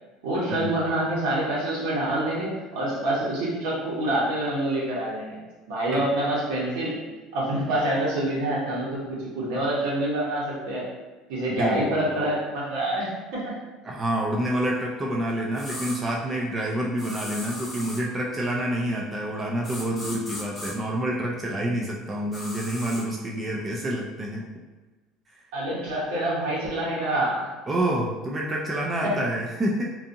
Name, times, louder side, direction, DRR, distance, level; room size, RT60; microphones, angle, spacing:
voice 1, 0.2-5.4 5.7-10.9 11.3-13.6 25.5-27.5 29.0-29.2, right 1 dB, 80° right, -6 dB, 1.1 m, -26 dB
voice 2, 11.5-11.9 13.8-24.5 27.7-29.8, right 1 dB, 25° right, -2 dB, 0.4 m, -28 dB
sound 1, 15.5-16.0 17.0-18.0 19.6-20.7 22.3-23.0, left 1 dB, 15° left, 0.9 m, -37 dB
2.6 x 2.5 x 2.6 m, 1.2 s
supercardioid pair, 110°, 0 cm